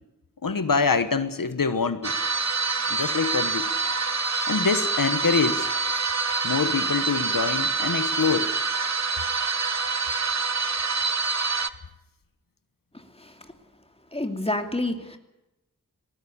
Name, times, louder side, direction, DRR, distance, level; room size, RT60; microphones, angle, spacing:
voice 1, 0.4-2.1 2.9-3.7 4.5-5.7 6.4-8.5, left 5 dB, 85° left, 11 dB, 1.2 m, -25 dB
sound 1, 2.0-11.7, right 4 dB, 55° right, 1.2 m, -26 dB
voice 2, 12.9-13.3 14.1-15.2, left 2 dB, 20° left, 6 dB, 2.8 m, -29 dB
19.5 x 19.0 x 8.6 m, 0.94 s
wide cardioid pair, 50°, 33 cm